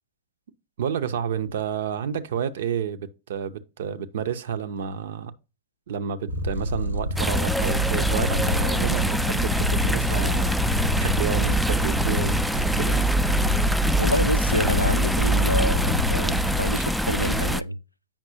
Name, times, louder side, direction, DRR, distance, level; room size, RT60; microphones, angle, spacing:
voice 1, 0.8-5.3 5.9-10.5 11.0-12.4 12.8-13.1, right 8 dB, 60° right, 0.6 m, -30 dB
Purr, 6.3-16.7, left 1 dB, 85° right, 1.1 m, -28 dB
sound 1, 7.2-17.6, equal, ahead, 0.3 m, -24 dB
voice 2, 14.0-17.8, equal, 90° left, 0.3 m, -27 dB
8.7 x 5.9 x 2.7 m
figure-of-eight pair, 90°, 0 cm